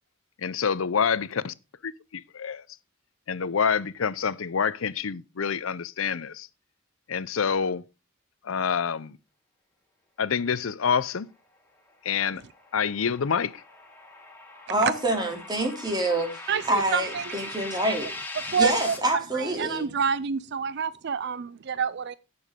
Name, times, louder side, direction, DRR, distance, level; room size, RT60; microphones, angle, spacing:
voice 1, 0.4-1.5 1.8-2.6 3.3-6.5 7.1-7.8 8.4-9.2 10.2-11.3 12.0-12.4 12.7-13.6, left 6 dB, 90° left, 0.6 m, -27 dB
sound 1, 12.3-19.0, left 3 dB, 10° left, 2.4 m, -40 dB
voice 2, 14.7-18.1 18.6-19.9, right 1 dB, 20° right, 3.1 m, -26 dB
voice 3, 16.5-17.5 18.4-18.7 19.3-22.1, right 6 dB, 55° right, 0.5 m, -28 dB
16.5 x 7.0 x 3.7 m
head